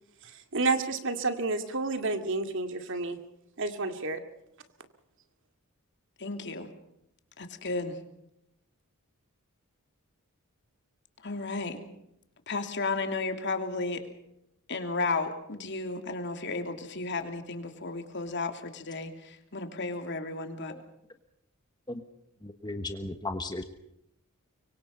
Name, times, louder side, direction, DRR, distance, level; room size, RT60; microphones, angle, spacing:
voice 1, 0.2-3.2 3.6-4.2, right 3 dB, 60° right, 8 dB, 2.3 m, -30 dB
voice 2, 6.2-6.7 7.4-8.0 11.2-11.8 12.5-14.0 14.7-20.7, left 3 dB, 55° left, 6 dB, 3.0 m, -33 dB
voice 3, 22.4-23.6, left 2 dB, 20° left, 7 dB, 1.3 m, -36 dB
24.5 x 24.5 x 5.5 m, 0.79 s
head